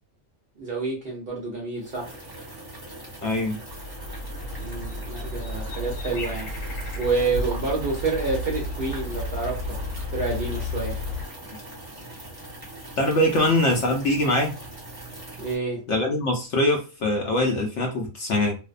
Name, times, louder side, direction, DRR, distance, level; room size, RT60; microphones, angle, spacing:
voice 1, 0.6-2.1 4.5-6.5 6.9-9.8 10.1-11.0 15.4-15.8, right 3 dB, 55° right, -2 dB, 0.7 m, -28 dB
sound 1, 1.8-15.6, right 1 dB, 20° right, 0.7 m, -41 dB
voice 2, 3.2-3.6 13.0-14.5 15.9-18.6, left 1 dB, 65° left, 1 dB, 0.8 m, -23 dB
sound 2, 3.7-11.2, left 1 dB, 85° left, 1.1 m, -32 dB
2.6 x 2.1 x 2.3 m, 0.32 s
omnidirectional pair, 1.5 m